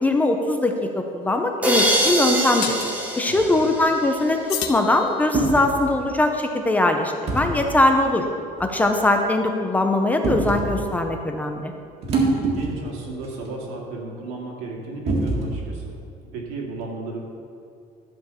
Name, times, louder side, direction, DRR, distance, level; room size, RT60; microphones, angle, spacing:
voice 1, 0.0-2.8 3.1-8.3 8.6-11.7, left 2 dB, 10° left, 4 dB, 0.4 m, -21 dB
sound 1, 0.6-0.8 2.6-3.0 4.5-5.6, left 10 dB, 80° left, 0.8 m, -32 dB
sound 2, 1.6-4.5, right 1 dB, 10° right, 1.0 m, -24 dB
voice 2, 3.2-3.7 12.2-15.9 16.3-17.2, right 3 dB, 80° right, -1 dB, 2.3 m, -34 dB
sound 3, 3.4-3.7 5.3-5.6 7.3-7.5 8.6-8.8 10.2-10.7 12.0-12.9 13.2-13.3 15.1-15.6, right 3 dB, 40° right, 1.8 m, -23 dB
12.0 x 4.9 x 6.9 m, 2.4 s
cardioid pair, 175°, 16 cm